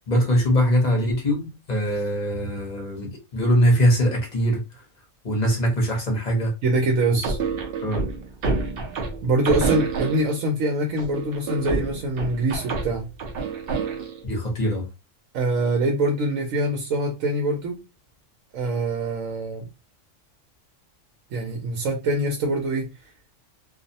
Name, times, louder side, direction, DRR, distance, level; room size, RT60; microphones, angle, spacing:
voice 1, 0.1-4.8 5.2-6.5 7.8-8.0 14.2-14.9, equal, 40° left, 0.8 m, -22 dB
voice 2, 6.6-7.4 9.2-13.1 15.3-17.8 18.5-19.7 21.3-22.9, right 1 dB, 90° right, 1.0 m, -24 dB
sound 1, 7.2-10.5 11.0-14.2, right 4 dB, 60° right, 0.7 m, -28 dB
2.5 x 2.0 x 2.6 m
omnidirectional pair, 1.3 m